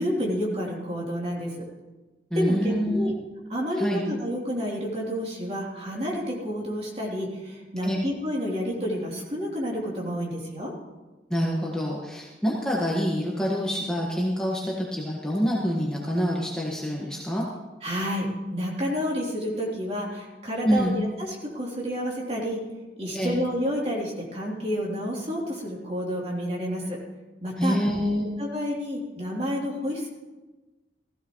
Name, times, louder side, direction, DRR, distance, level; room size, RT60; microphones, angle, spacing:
voice 1, 0.0-1.7 2.3-3.1 3.5-10.7 17.8-22.6 23.0-27.0 27.4-27.8 28.4-30.1, equal, 35° right, -3 dB, 3.2 m, -29 dB
voice 2, 2.3-3.1 3.8-4.0 7.8-8.0 11.3-17.4 20.6-21.0 23.1-23.4 27.6-28.3, equal, 5° left, -4 dB, 1.6 m, -26 dB
16.5 x 15.5 x 3.2 m, 1.2 s
head